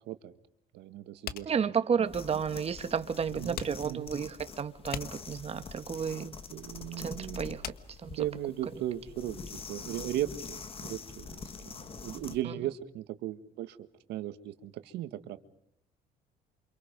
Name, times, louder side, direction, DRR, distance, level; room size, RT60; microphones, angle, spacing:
voice 1, 0.7-1.5 3.3-4.1 6.5-7.6 8.2-9.4 9.7-13.8 14.1-15.4, right 12 dB, 85° right, 1.8 m, -37 dB
sound 1, 1.3-8.9, left 10 dB, 65° left, 1.4 m, -44 dB
voice 2, 1.5-6.3 7.0-7.6 8.0-8.2, right 7 dB, 35° right, 1.7 m, -32 dB
sound 2, 2.1-12.4, left 5 dB, 35° left, 1.8 m, -45 dB
29.0 x 26.5 x 5.4 m
cardioid pair, 110°, 17 cm